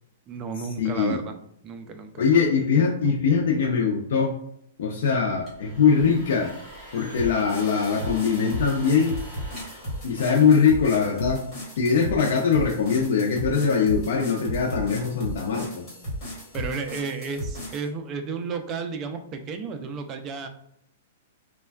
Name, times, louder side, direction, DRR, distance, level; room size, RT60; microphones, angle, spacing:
voice 1, 0.3-1.3 1.6-2.2 16.5-20.5, right 5 dB, 25° right, 6 dB, 0.3 m, -32 dB
voice 2, 0.8-1.2 2.2-4.4 4.8-6.5 6.9-9.1 10.0-11.4 11.8-15.9, left 6 dB, 70° left, 0 dB, 0.4 m, -22 dB
sound 1, 5.3-11.0, right 1 dB, 5° right, 1.3 m, -45 dB
sound 2, 7.2-17.9, equal, 25° left, 1.3 m, -35 dB
3.3 x 2.2 x 2.3 m, 0.72 s
hypercardioid pair, 155°, 0 cm